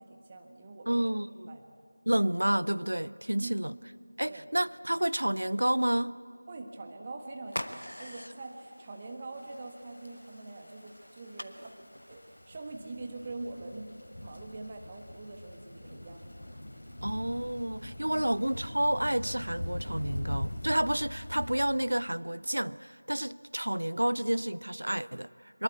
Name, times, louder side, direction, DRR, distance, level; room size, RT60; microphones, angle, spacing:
voice 1, 0.0-1.1 1.5-1.7 3.4-3.6 4.3-4.4 6.5-16.3 18.1-18.2 21.3-21.5, right 2 dB, 20° right, 1.5 m, -44 dB
voice 2, 0.9-1.5 2.1-3.7 4.2-6.1 17.0-25.6, right 1 dB, 65° right, 0.5 m, -30 dB
sound 1, 7.5-12.7, equal, 80° left, 1.3 m, -45 dB
sound 2, 9.4-21.7, left 1 dB, 45° left, 3.9 m, -42 dB
23.0 x 21.5 x 8.5 m
figure-of-eight pair, 170°, 0 cm